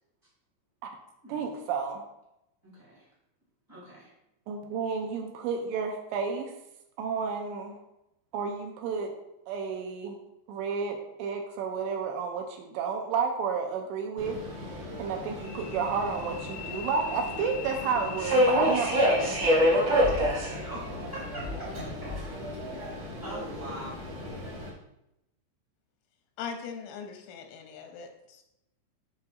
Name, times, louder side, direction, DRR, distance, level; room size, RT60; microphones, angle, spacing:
voice 1, 1.3-2.0 4.5-6.5 7.0-7.8 8.3-9.1 9.5-10.2 10.5-19.4, right 5 dB, 85° right, 3 dB, 2.8 m, -31 dB
voice 2, 2.6-3.1 3.7-4.1 19.2-21.5 21.7-22.1 22.7-24.1, right 1 dB, 20° right, -7 dB, 0.5 m, -43 dB
Subway metro underground, 14.2-24.7, equal, 60° right, 1.4 m, -29 dB
voice 3, 26.4-28.1, left 6 dB, 90° left, 5 dB, 3.1 m, -39 dB
7.9 x 5.4 x 2.6 m, 0.86 s
omnidirectional pair, 5.3 m